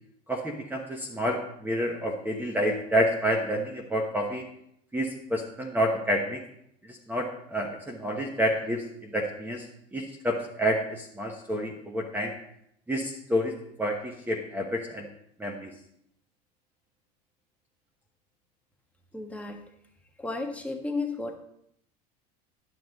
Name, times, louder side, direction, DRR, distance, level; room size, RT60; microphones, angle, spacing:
voice 1, 0.3-4.4 4.9-6.4 6.9-9.7 9.9-12.3 12.9-13.5 13.8-15.1 15.4-15.7, equal, 10° right, 2 dB, 1.1 m, -29 dB
voice 2, 19.1-19.6 20.2-21.4, left 3 dB, 5° left, 2 dB, 1.3 m, -33 dB
11.0 x 6.0 x 4.1 m, 0.72 s
supercardioid pair, 110°, 20 cm